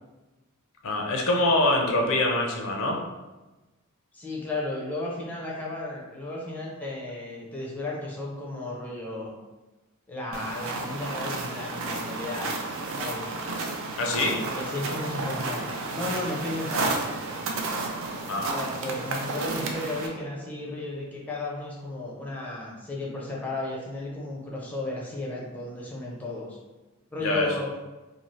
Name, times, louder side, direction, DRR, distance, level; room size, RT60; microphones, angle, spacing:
voice 1, 0.8-3.0 14.0-14.4 18.3-18.5 27.2-27.5, left 2 dB, 60° left, 1 dB, 0.5 m, -24 dB
voice 2, 4.1-9.3 10.1-12.5 13.0-13.3 14.5-17.0 18.5-26.6 27.1-27.7, left 2 dB, 5° left, -4 dB, 0.5 m, -34 dB
sound 1, 10.3-20.1, right 3 dB, 60° right, 0.4 m, -32 dB
2.6 x 2.3 x 3.1 m, 1.1 s
head